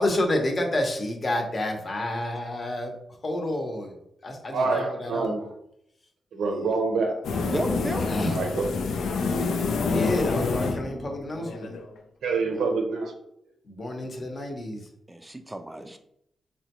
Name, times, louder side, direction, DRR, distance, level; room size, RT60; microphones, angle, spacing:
voice 1, 0.0-2.9 3.2-3.9 4.2-5.5 6.4-6.7 8.0-8.4 9.8-11.7 12.5-12.6 13.6-14.9, left 1 dB, 40° left, 2 dB, 0.8 m, -29 dB
voice 2, 4.5-5.5 6.3-7.2 8.3-8.7 12.2-13.1, right 4 dB, 90° right, 3 dB, 0.6 m, -26 dB
sound 1, 7.2-11.9, left 4 dB, 85° left, 0.4 m, -27 dB
voice 3, 7.4-8.1 15.1-16.0, right 1 dB, 15° right, 6 dB, 0.3 m, -33 dB
3.7 x 2.2 x 2.9 m, 0.75 s
cardioid pair, 70°, 0 cm